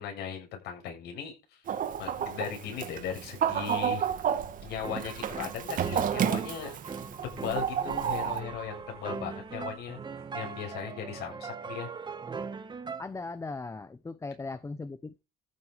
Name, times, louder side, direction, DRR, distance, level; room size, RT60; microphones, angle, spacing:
voice 1, 0.0-1.6 2.0-4.1 4.6-6.8 7.2-10.0 10.3-11.9, left 8 dB, 80° left, 7.6 m, -38 dB
Chicken rooster, 1.7-8.4, right 8 dB, 55° right, 2.1 m, -31 dB
sound 1, 2.8-10.7, right 8 dB, 70° right, 2.6 m, -53 dB
sound 2, 4.8-13.0, right 5 dB, 25° right, 1.7 m, -40 dB
voice 2, 13.0-15.2, left 3 dB, 15° left, 0.9 m, -38 dB
14.0 x 7.8 x 5.2 m
cardioid pair, 110°, 17 cm